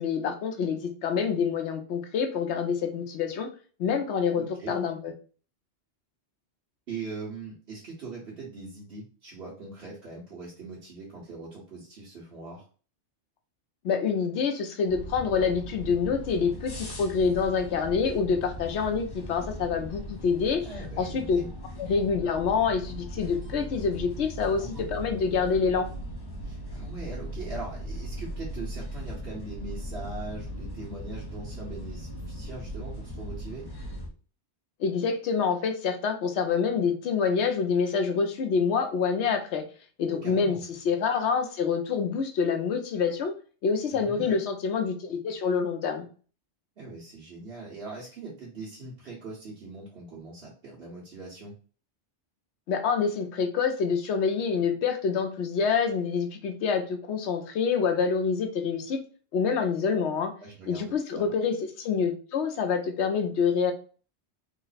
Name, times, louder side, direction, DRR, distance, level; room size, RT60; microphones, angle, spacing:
voice 1, 0.0-3.5 3.8-5.1 13.8-20.6 21.0-21.4 21.8-25.9 34.8-39.7 40.0-40.6 40.8-43.3 43.6-46.1 52.7-59.0 59.3-60.3 60.7-63.7, left 5 dB, 75° left, 6 dB, 0.9 m, -27 dB
voice 2, 4.3-4.7 6.9-12.6 20.6-21.5 24.6-24.9 26.4-33.6 40.1-40.6 43.9-44.4 46.8-51.5 60.4-61.3, right 3 dB, 60° right, -7 dB, 1.3 m, -41 dB
sound 1, 14.9-34.1, equal, 30° left, 0.5 m, -39 dB
3.2 x 2.0 x 4.0 m, 0.39 s
omnidirectional pair, 1.2 m